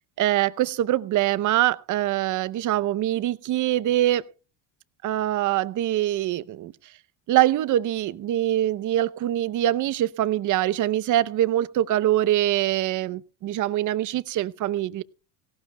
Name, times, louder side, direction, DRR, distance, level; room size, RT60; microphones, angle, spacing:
voice 1, 0.2-4.3 5.0-6.7 7.3-15.0, right 13 dB, 40° right, 0.6 m, -24 dB
17.5 x 16.5 x 2.2 m
cardioid pair, 125°, 47 cm